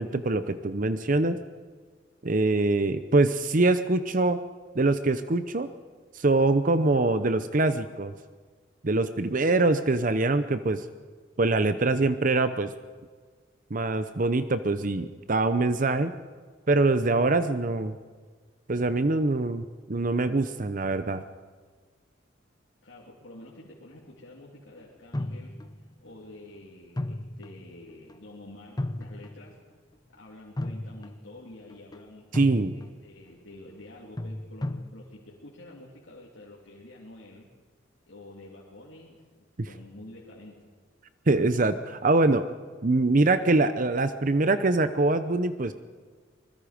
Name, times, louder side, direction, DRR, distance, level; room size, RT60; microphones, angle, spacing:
voice 1, 0.0-1.4 2.2-4.4 4.7-5.7 6.1-8.1 8.8-10.9 11.4-12.7 13.7-16.1 16.7-18.0 18.7-21.2 32.3-32.7 39.6-39.7 41.3-42.4 42.8-45.7, right 2 dB, 45° right, 11 dB, 0.7 m, -24 dB
voice 2, 22.8-25.6 26.0-29.6 30.2-32.3 32.7-37.5 38.1-40.7, left 1 dB, 80° left, -4 dB, 3.1 m, -48 dB
sound 1, 25.1-25.9 27.0-27.7 28.1-28.2 28.8-29.5 30.6-31.3 31.7-32.0 32.3-33.0 34.2-34.9, left 1 dB, 20° left, 0.6 m, -34 dB
25.0 x 21.0 x 5.1 m, 1.5 s
head